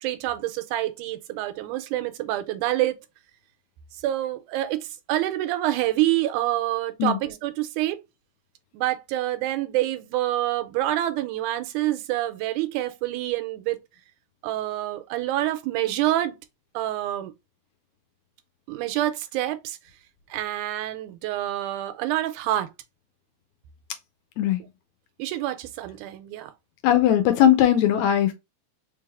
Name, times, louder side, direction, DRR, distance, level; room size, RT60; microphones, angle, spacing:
voice 1, 0.0-3.0 4.0-8.0 8.7-13.8 14.4-16.4 16.7-17.3 18.7-19.8 20.3-22.7 25.2-26.5, right 14 dB, 85° right, 2.0 m, -27 dB
voice 2, 26.8-28.3, left 11 dB, 80° left, 1.8 m, -19 dB
4.6 x 3.2 x 2.3 m
omnidirectional pair, 3.5 m